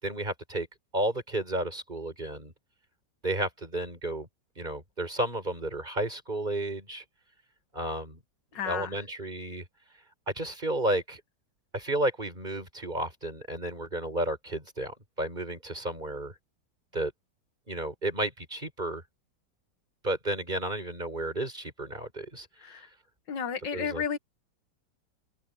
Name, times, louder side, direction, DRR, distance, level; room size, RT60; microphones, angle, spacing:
voice 1, 0.0-0.7 0.9-2.5 3.2-4.3 4.6-7.0 7.7-8.2 8.6-9.6 10.3-11.2 11.7-16.3 16.9-17.1 17.7-19.0 20.0-22.9 23.7-24.0, right 1 dB, 25° right, 5.6 m, -32 dB
voice 2, 8.5-9.0 22.6-22.9 23.3-24.2, left 7 dB, 75° left, 2.0 m, -32 dB
omnidirectional pair, 1.9 m